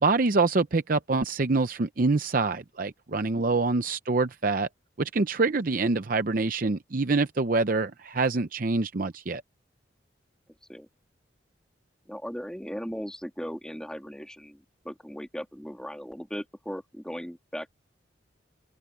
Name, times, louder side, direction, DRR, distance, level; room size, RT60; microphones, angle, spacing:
voice 1, 0.0-4.7 5.0-9.4, right 3 dB, 45° right, 0.6 m, -25 dB
voice 2, 12.1-17.7, equal, 5° left, 3.2 m, -38 dB
open air
head